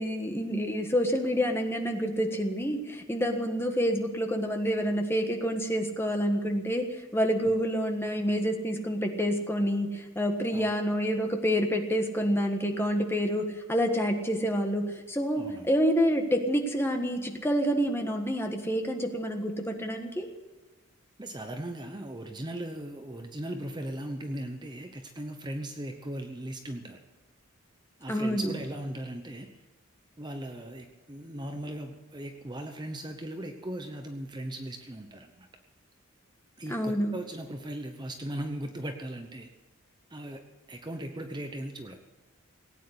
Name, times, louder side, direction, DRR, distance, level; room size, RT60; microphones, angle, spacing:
voice 1, 0.0-20.3 28.1-28.5 36.7-37.2, equal, 10° left, 4 dB, 1.5 m, -28 dB
voice 2, 15.3-15.7 21.2-27.0 28.0-29.6 30.2-35.5 36.6-39.5 40.1-40.4 40.7-42.0, right 1 dB, 20° right, 5 dB, 0.9 m, -38 dB
18.0 x 9.2 x 8.0 m, 1.2 s
head